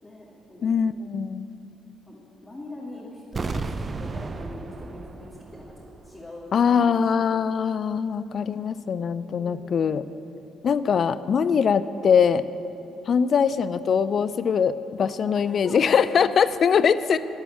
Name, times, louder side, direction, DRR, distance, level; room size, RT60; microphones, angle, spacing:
voice 1, 0.0-0.8 2.1-8.0 9.2-10.0 12.8-13.1 15.4-16.1 16.4-16.5, left 2 dB, 20° left, -6 dB, 2.6 m, -43 dB
voice 2, 0.6-1.5 6.5-10.1 10.6-12.4 13.1-17.2, left 6 dB, 45° left, 15 dB, 0.5 m, -22 dB
sound 1, 3.3-6.2 6.5-6.6, right 3 dB, 35° right, 0.7 m, -33 dB
12.0 x 8.3 x 8.8 m, 2.8 s
figure-of-eight pair, 45°, 0 cm